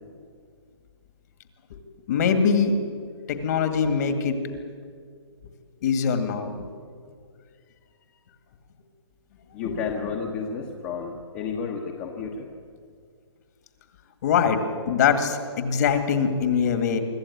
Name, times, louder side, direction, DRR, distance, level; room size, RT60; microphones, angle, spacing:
voice 1, 2.1-2.8 3.3-4.4 5.8-6.7 9.6-9.8 14.2-14.6 14.9-17.0, left 6 dB, 40° left, 8 dB, 2.2 m, -23 dB
voice 2, 9.5-12.5, left 5 dB, 20° left, 1 dB, 1.3 m, -31 dB
25.0 x 13.5 x 9.6 m, 2.1 s
hypercardioid pair, 165°, 15 cm